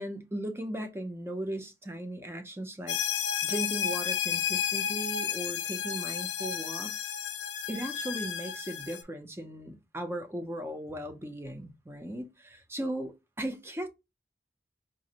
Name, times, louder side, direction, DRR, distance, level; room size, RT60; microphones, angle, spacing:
voice 1, 0.0-3.0 3.4-7.1 7.7-13.1 13.4-13.9, right 1 dB, 15° right, 0.5 m, -37 dB
sound 1, 2.9-9.0, left 9 dB, 80° left, 0.5 m, -32 dB
4.8 x 2.0 x 2.7 m
head